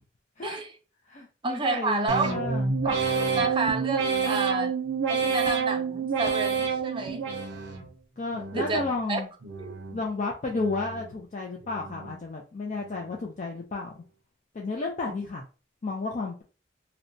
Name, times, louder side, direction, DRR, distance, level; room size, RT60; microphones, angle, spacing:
voice 1, 0.4-0.7 1.4-2.3 2.8-4.7 5.1-7.3 8.5-8.8 9.1-9.2 9.6-9.8 15.1-15.2, right 3 dB, 25° right, 0.4 m, -30 dB
voice 2, 1.1-2.8 8.2-9.3 9.9-14.0 14.5-15.4 15.8-16.4, left 3 dB, 40° left, 0.4 m, -32 dB
sound 1, 2.1-7.9 8.3-9.0 9.4-10.1 10.5-11.2 11.6-12.2 12.7-13.2, right 5 dB, 75° right, 0.5 m, -29 dB
2.8 x 2.1 x 2.6 m
head